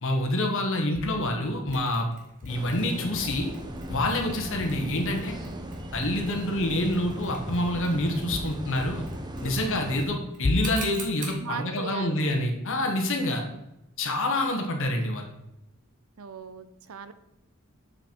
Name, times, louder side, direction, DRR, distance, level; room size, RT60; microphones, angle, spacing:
voice 1, 0.0-2.1 2.4-3.5 3.9-5.4 5.9-9.1 9.4-13.4 14.0-15.3, left 1 dB, 65° left, 3 dB, 1.2 m, -27 dB
sound 1, 0.9-1.3 1.7-2.0 2.4-2.7 3.1-3.6 3.9-4.2 4.6-5.0 5.3-5.7 6.0-6.3 6.8-7.2 7.5-8.0 8.3-8.7 10.4-11.0, left 2 dB, 40° left, 0.4 m, -35 dB
Mechanisms, 1.7-11.5, right 3 dB, 40° right, 1.7 m, -47 dB
sound 2, 2.5-10.0, equal, 20° right, 0.8 m, -38 dB
voice 2, 9.4-10.1 11.3-12.2 13.5-13.6 16.2-17.1, right 6 dB, 70° right, 12 dB, 0.6 m, -39 dB
6.9 x 5.9 x 4.4 m, 0.87 s
head